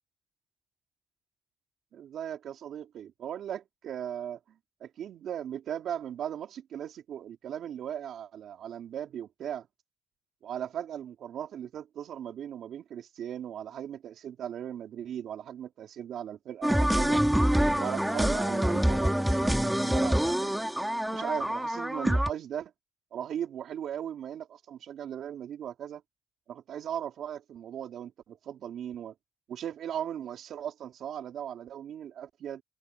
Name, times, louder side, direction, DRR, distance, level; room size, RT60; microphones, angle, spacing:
voice 1, 1.9-9.7 10.4-17.2 17.8-20.5 21.1-22.7 23.1-26.0 26.5-29.1 29.5-32.6, right 9 dB, 70° right, 3.1 m, -38 dB
sound 1, 16.6-22.3, equal, 5° right, 2.6 m, -26 dB
cardioid pair, 90°, 0 cm